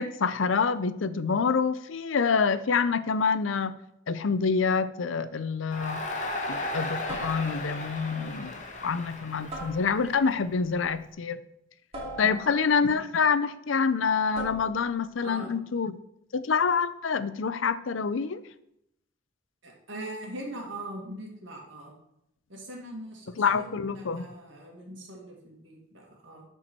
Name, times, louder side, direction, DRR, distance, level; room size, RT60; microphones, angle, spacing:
voice 1, 0.0-3.8 4.1-6.0 6.5-8.6 8.8-11.4 12.2-16.0 16.3-18.4 23.3-24.3, left 5 dB, 85° left, 13 dB, 0.6 m, -26 dB
sound 1, 5.3-5.6 7.1-7.9 9.5-10.3 11.9-12.9 14.3-14.9, right 1 dB, 30° right, 3.0 m, -41 dB
Crowd, 5.7-10.9, left 2 dB, 40° left, 1.3 m, -36 dB
voice 2, 15.2-15.6 19.6-21.9 22.5-26.4, right 1 dB, 75° right, -1 dB, 2.0 m, -41 dB
12.0 x 4.5 x 4.5 m, 0.78 s
head